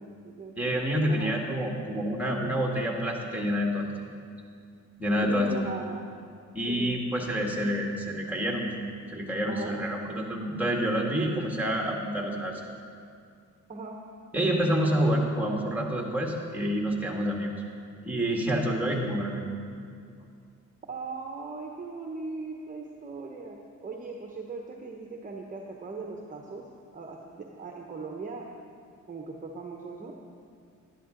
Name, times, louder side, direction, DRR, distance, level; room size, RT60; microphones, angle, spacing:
voice 1, 0.0-1.3 5.2-6.1 6.7-7.0 9.5-9.7 13.7-14.0 20.9-26.7 26.9-28.5 29.1-30.2, right 3 dB, 25° right, 1 dB, 1.0 m, -39 dB
voice 2, 0.6-3.9 5.0-5.5 6.5-8.7 9.1-12.6 14.3-17.5 18.0-19.4, equal, 5° right, -1 dB, 1.9 m, -28 dB
11.5 x 11.0 x 3.9 m, 2.3 s
cardioid pair, 90°, 30 cm